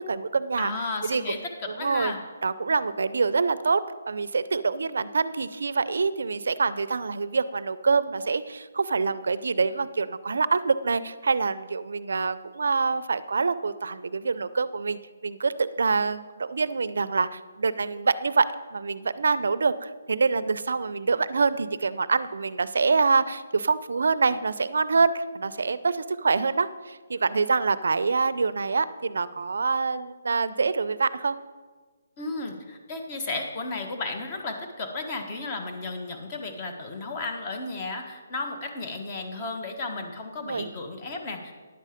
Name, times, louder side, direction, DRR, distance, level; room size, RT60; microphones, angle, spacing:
voice 1, 0.0-0.7 1.0-1.3 1.8-2.1 2.4-31.4 40.5-40.7, right 4 dB, 75° right, 14 dB, 0.5 m, -26 dB
voice 2, 0.6-2.2 32.2-41.6, left 3 dB, 30° left, 4 dB, 1.3 m, -34 dB
10.5 x 7.6 x 5.0 m, 1.4 s
hypercardioid pair, 165°, 0 cm